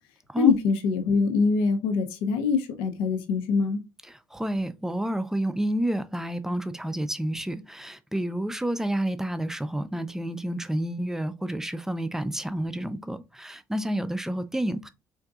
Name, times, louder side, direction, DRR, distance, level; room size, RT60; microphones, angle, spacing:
voice 1, 0.4-3.8, left 5 dB, 85° left, 0.5 m, -24 dB
voice 2, 4.1-14.9, right 1 dB, 5° right, 0.3 m, -30 dB
3.7 x 2.6 x 2.3 m
supercardioid pair, 75°, 9 cm